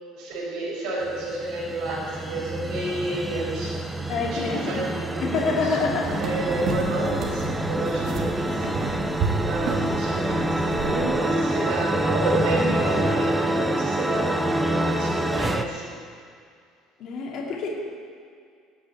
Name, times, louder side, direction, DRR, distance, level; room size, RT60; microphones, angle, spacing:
voice 1, 0.1-3.7 4.3-5.5 6.2-15.9, right 2 dB, 60° right, -4 dB, 4.9 m, -30 dB
sound 1, 1.0-15.6, right 1 dB, 5° right, 0.6 m, -27 dB
voice 2, 4.1-4.8 5.2-6.2 17.0-17.7, left 4 dB, 45° left, -2 dB, 2.5 m, -26 dB
sound 2, 5.8-11.1, right 3 dB, 45° right, 1.9 m, -31 dB
17.5 x 6.2 x 9.7 m, 2.2 s
cardioid pair, 170°, 0 cm